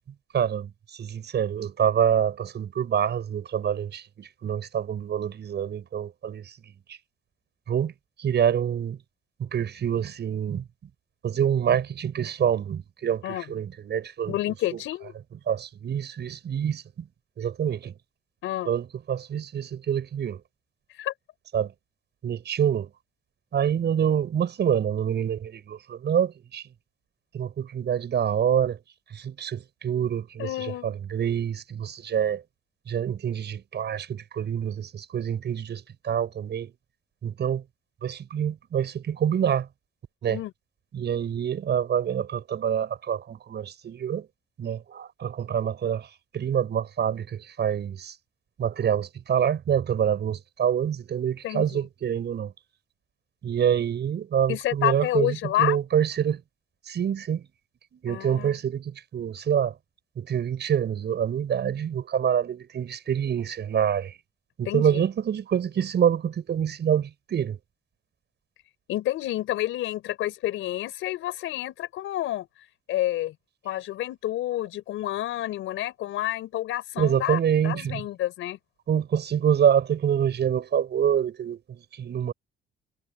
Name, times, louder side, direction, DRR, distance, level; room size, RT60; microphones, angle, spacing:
voice 1, 0.3-6.5 6.9-7.0 7.7-7.9 8.2-9.0 9.4-10.7 11.2-14.4 14.7-14.8 15.5-17.1 17.4-17.9 18.6-20.4 21.5-21.7 22.2-22.9 23.5-26.6 27.3-28.8 29.1-32.4 32.9-36.7 37.2-37.6 38.0-39.7 40.2-40.4 40.9-44.3 44.6-48.1 48.6-52.5 53.4-56.4 56.9-57.5 57.9-59.7 60.2-64.1 64.6-67.6 77.0-78.0 78.9-82.3, right 8 dB, 60° right, 6.8 m, -26 dB
voice 2, 13.2-13.5 14.3-15.1 18.4-18.7 20.9-21.1 30.4-30.9 40.3-40.5 51.4-51.8 54.5-55.8 58.1-58.5 64.7-65.0 68.9-72.5 72.9-73.3 73.6-78.6, left 14 dB, 85° left, 5.5 m, -29 dB
cardioid pair, 90°, 20 cm